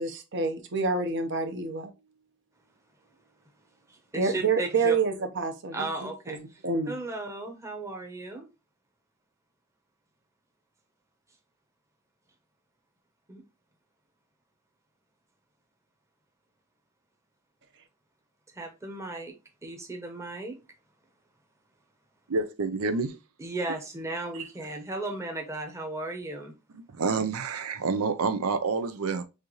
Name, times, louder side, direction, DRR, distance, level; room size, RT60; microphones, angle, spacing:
voice 1, 0.0-1.9 4.1-6.9, right 4 dB, 55° right, 0.8 m, -28 dB
voice 2, 3.9-5.0 5.7-6.6 6.9-8.5 13.3-13.4 18.5-19.3 19.6-20.6 23.4-26.5, right 2 dB, 15° right, 0.9 m, -35 dB
voice 3, 22.3-23.2 24.3-24.5 26.7-29.2, right 4 dB, 85° right, 0.6 m, -28 dB
6.5 x 2.5 x 3.0 m
head